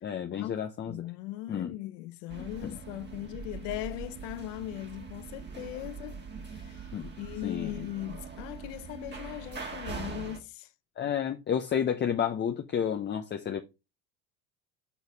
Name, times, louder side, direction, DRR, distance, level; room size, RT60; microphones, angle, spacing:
voice 1, 0.0-1.1 1.5-1.7 2.6-2.8 6.9-7.1 7.4-7.9 11.0-13.6, left 8 dB, 30° left, 0.7 m, -31 dB
voice 2, 0.9-6.2 6.4-6.9 7.2-10.7, left 16 dB, 70° left, 0.8 m, -39 dB
sound 1, 2.3-10.4, right 5 dB, 25° right, 1.5 m, -42 dB
7.0 x 4.0 x 4.7 m
hypercardioid pair, 80°, 39 cm